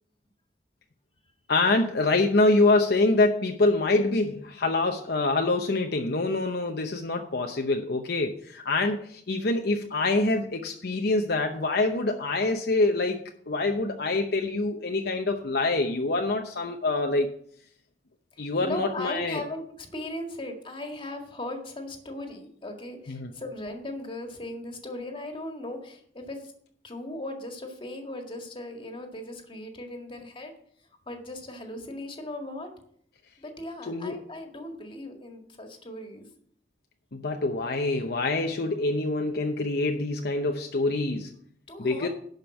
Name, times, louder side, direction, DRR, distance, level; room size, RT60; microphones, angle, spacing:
voice 1, 1.5-13.2 13.5-17.3 18.4-19.4 23.1-23.3 33.9-34.2 37.1-41.3 41.8-42.1, left 2 dB, 60° left, 4 dB, 0.8 m, -25 dB
voice 2, 18.3-26.5 26.8-30.5 31.1-32.7 33.4-36.3 41.7-42.1, left 1 dB, 30° left, 3 dB, 1.8 m, -38 dB
11.5 x 5.3 x 7.1 m, 0.64 s
head